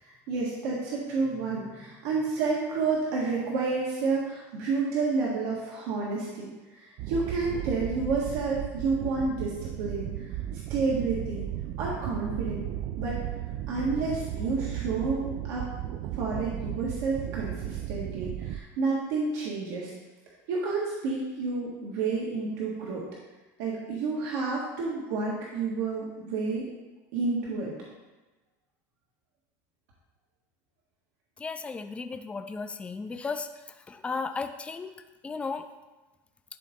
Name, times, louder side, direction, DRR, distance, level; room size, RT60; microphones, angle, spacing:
voice 1, 0.0-10.2 10.7-11.5 11.8-12.6 13.0-13.2 13.7-15.6 16.1-19.9 20.5-23.1 23.6-26.6 27.1-27.7, right 4 dB, 75° right, -4 dB, 1.7 m, -30 dB
sound 1, 7.0-18.6, right 12 dB, 50° right, 0.3 m, -35 dB
voice 2, 31.4-33.5 33.9-34.9 35.2-35.7, left 4 dB, 15° left, 8 dB, 0.4 m, -34 dB
11.5 x 3.8 x 3.7 m, 1.1 s
supercardioid pair, 135°, 9 cm